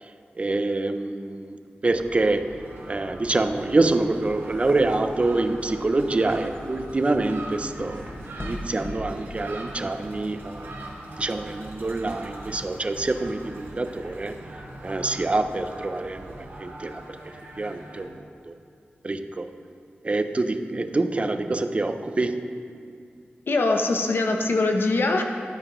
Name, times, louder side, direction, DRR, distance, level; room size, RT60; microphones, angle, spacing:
voice 1, 0.4-1.6 1.8-2.5 2.9-8.1 8.4-10.7 11.2-14.4 14.8-17.0 17.6-18.1 18.4-18.5 19.0-19.5 20.0-22.5, right 2 dB, 30° right, 9 dB, 0.4 m, -26 dB
Gull seagull, 1.9-16.5, right 2 dB, 90° right, 0.9 m, -44 dB
sound 1, 2.5-18.1, right 1 dB, 75° right, 1.6 m, -43 dB
sound 2, 4.1-10.0, left 1 dB, 25° left, 0.9 m, -41 dB
voice 2, 23.5-25.2, left 2 dB, 70° left, 3 dB, 0.7 m, -22 dB
12.0 x 8.7 x 3.0 m, 2.3 s
wide cardioid pair, 120°, 4 cm